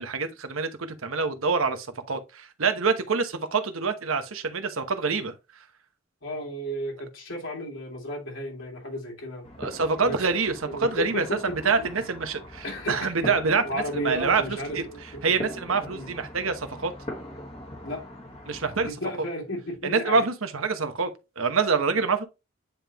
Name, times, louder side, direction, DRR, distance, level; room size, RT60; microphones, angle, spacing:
voice 1, 0.0-5.3 9.6-14.8 15.2-16.9 18.5-18.9 19.8-21.1 21.4-22.2, right 4 dB, 90° right, 1.1 m, -26 dB
voice 2, 6.2-9.5 10.0-10.3 10.6-11.7 12.6-13.3 13.6-15.3 15.9-16.1 17.8-18.1 18.8-20.3 21.9-22.0, equal, 75° left, 2.8 m, -34 dB
sound 1, 9.4-18.9, left 1 dB, 30° left, 1.3 m, -41 dB
9.6 x 3.5 x 2.9 m
head